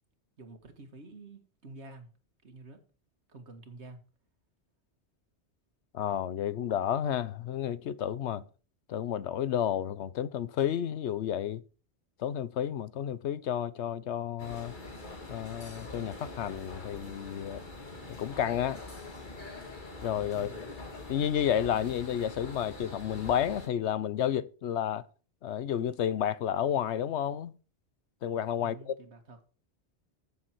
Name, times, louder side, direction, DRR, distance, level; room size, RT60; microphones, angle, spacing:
voice 1, 0.4-2.1 2.4-2.8 3.3-4.0 20.3-20.7 28.6-29.4, right 3 dB, 80° right, 2.0 m, -49 dB
voice 2, 5.9-8.4 8.9-11.6 12.2-14.7 15.3-17.6 18.2-18.8 20.0-20.5 21.1-25.0 25.4-27.5 28.2-28.9, left 10 dB, 85° left, 1.0 m, -31 dB
sound 1, 14.4-23.7, left 2 dB, 45° left, 2.0 m, -44 dB
14.5 x 6.9 x 4.5 m
omnidirectional pair, 1.1 m